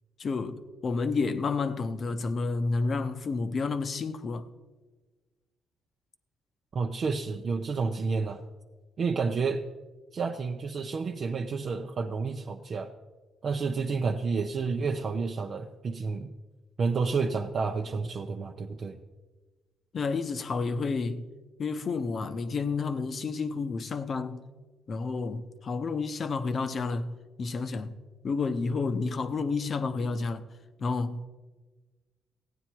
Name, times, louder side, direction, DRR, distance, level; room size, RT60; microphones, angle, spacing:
voice 1, 0.2-4.5 19.9-21.3 21.6-24.4 24.9-28.0 28.2-30.4 30.8-31.3, left 4 dB, 45° left, 0.9 m, -30 dB
voice 2, 6.7-8.4 9.0-9.6 10.1-12.9 13.4-16.3 16.8-19.0, right 4 dB, 50° right, 0.7 m, -30 dB
15.0 x 9.5 x 4.5 m
cardioid pair, 90°, 0 cm